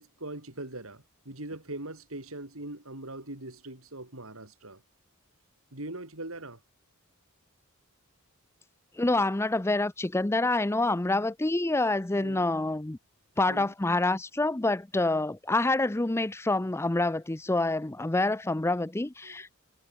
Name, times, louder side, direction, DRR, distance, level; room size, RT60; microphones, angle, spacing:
voice 1, 0.0-4.8 5.7-6.6 12.2-12.5 13.4-13.7 19.2-19.3, right 2 dB, 65° right, 4.6 m, -41 dB
voice 2, 9.0-13.0 13.4-19.5, left 2 dB, 10° left, 0.5 m, -27 dB
head